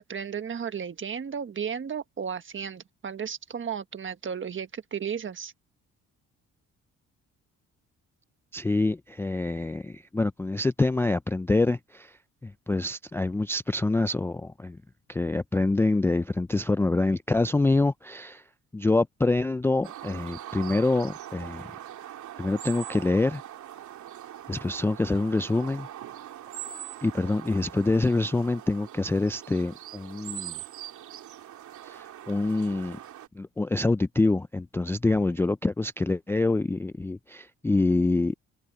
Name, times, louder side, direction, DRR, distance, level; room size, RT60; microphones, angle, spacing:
voice 1, 0.0-5.5, right 7 dB, 40° right, 1.5 m, -34 dB
voice 2, 8.5-12.1 12.4-14.8 15.1-18.4 18.7-21.7 22.4-23.4 24.5-25.9 27.0-30.6 31.8-33.0 33.4-38.3, left 2 dB, 10° left, 0.3 m, -26 dB
sound 1, 19.8-33.3, right 11 dB, 75° right, 2.7 m, -42 dB
cardioid pair, 90°, 30 cm